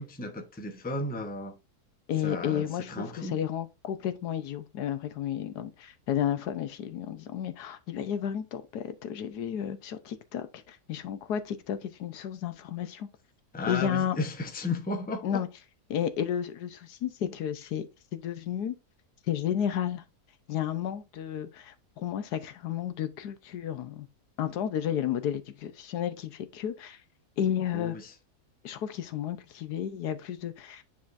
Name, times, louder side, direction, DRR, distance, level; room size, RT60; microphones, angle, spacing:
voice 1, 0.0-1.6 2.2-3.4 13.5-15.5 27.7-28.1, left 2 dB, 10° left, 0.6 m, -34 dB
voice 2, 2.1-13.1 13.7-14.2 15.2-15.5 15.9-17.9 18.1-18.8 19.3-20.0 20.5-24.1 24.4-27.0 27.4-27.9 28.6-30.8, left 9 dB, 85° left, 1.4 m, -32 dB
9.5 x 4.4 x 2.5 m
omnidirectional pair, 1.7 m